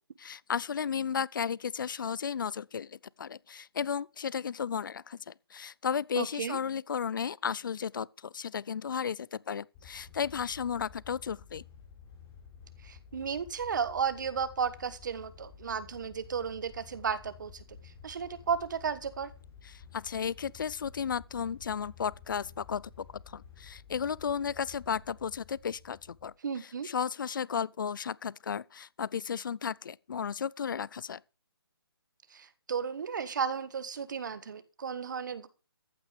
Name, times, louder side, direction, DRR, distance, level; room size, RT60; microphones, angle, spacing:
voice 1, 0.2-2.9 3.2-11.6 19.6-22.9 23.3-26.3 26.8-31.2, left 7 dB, 55° left, 0.5 m, -34 dB
voice 2, 6.2-6.6 12.8-17.6 18.0-19.3 26.4-26.9 32.3-35.5, right 6 dB, 50° right, 1.3 m, -34 dB
sound 1, 9.7-26.3, left 6 dB, 15° left, 3.6 m, -52 dB
14.5 x 8.4 x 5.0 m
hypercardioid pair, 165°, 13 cm